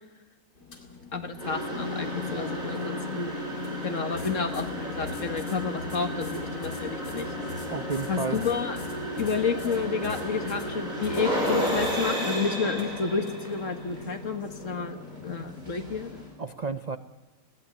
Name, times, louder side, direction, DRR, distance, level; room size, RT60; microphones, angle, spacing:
sound 1, 0.5-15.3, left 3 dB, 85° left, 4.1 m, -45 dB
voice 1, 1.1-3.4 3.8-7.3 8.1-8.8 9.2-16.2, left 5 dB, 50° left, 7 dB, 2.0 m, -30 dB
sound 2, 1.4-16.3, equal, 25° right, 6.1 m, -33 dB
voice 2, 7.7-8.4 16.4-17.0, right 5 dB, 60° right, 11 dB, 0.4 m, -31 dB
20.5 x 16.5 x 8.9 m, 1.2 s
omnidirectional pair, 1.7 m